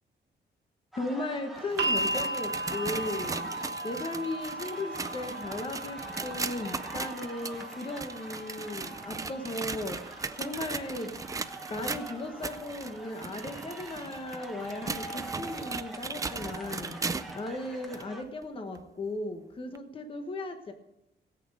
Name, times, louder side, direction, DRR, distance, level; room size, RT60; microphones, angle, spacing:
sound 1, 0.9-18.2, right 1 dB, ahead, 1.4 m, -45 dB
voice 1, 1.0-10.0 10.4-11.1 11.7-17.0 17.3-20.7, left 2 dB, 30° left, 6 dB, 1.2 m, -36 dB
sound 2, 1.6-17.4 17.9-18.0 18.7-18.8 19.7-19.8, right 4 dB, 20° right, 0.4 m, -38 dB
sound 3, 1.8-13.9 14.9-15.0, right 2 dB, 70° right, 1.3 m, -38 dB
17.5 x 8.5 x 4.9 m, 0.94 s
wide cardioid pair, 180°, 18 cm